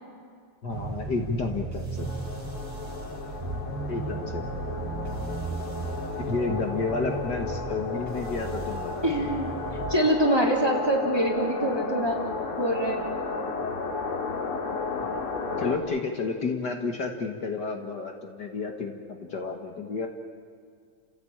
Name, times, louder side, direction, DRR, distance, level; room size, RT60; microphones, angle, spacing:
voice 1, 0.6-2.1 3.9-4.5 6.3-9.3 15.0-15.2 15.6-20.1, left 4 dB, 55° left, 4 dB, 2.1 m, -31 dB
sound 1, 0.7-9.9, right 3 dB, 45° right, 2.6 m, -36 dB
sound 2, 2.0-15.8, left 4 dB, 90° left, 3.0 m, -34 dB
voice 2, 9.0-9.5 9.9-12.2 12.6-13.0, right 1 dB, 10° right, 0 dB, 3.1 m, -24 dB
30.0 x 16.0 x 8.8 m, 2.1 s
omnidirectional pair, 2.4 m